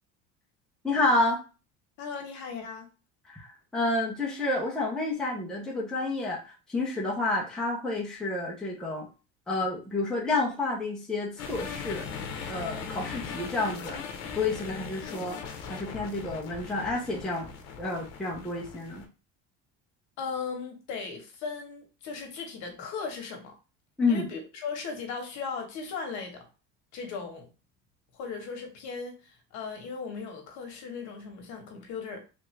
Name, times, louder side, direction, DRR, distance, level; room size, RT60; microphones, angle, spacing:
voice 1, 0.8-1.4 3.3-9.1 9.5-12.1 12.5-14.0 14.3-17.5 17.8-19.0 24.0-24.3, left 2 dB, ahead, 0.6 m, -29 dB
voice 2, 2.0-2.9 20.2-23.5 24.1-26.5 26.9-27.5 28.1-29.2 29.5-32.2, left 5 dB, 60° left, 1.1 m, -37 dB
sound 1, 11.4-19.1, left 6 dB, 85° left, 0.7 m, -39 dB
3.4 x 2.5 x 3.1 m
cardioid pair, 165°, 32 cm